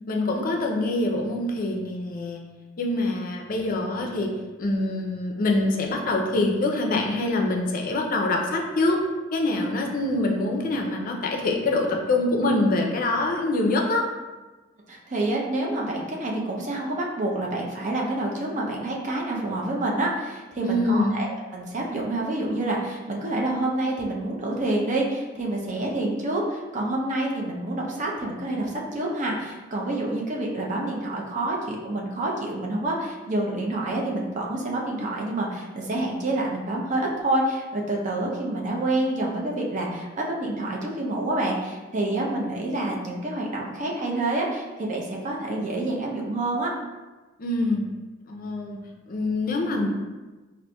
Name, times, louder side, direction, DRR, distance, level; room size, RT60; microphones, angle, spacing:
voice 1, 0.1-2.4 2.8-9.0 9.3-14.1 20.6-21.2 47.4-47.9 48.3-49.9, left 2 dB, 45° left, 1 dB, 0.5 m, -25 dB
voice 2, 14.9-46.7, right 2 dB, 40° right, -2 dB, 0.5 m, -28 dB
4.2 x 2.5 x 2.2 m, 1.2 s
head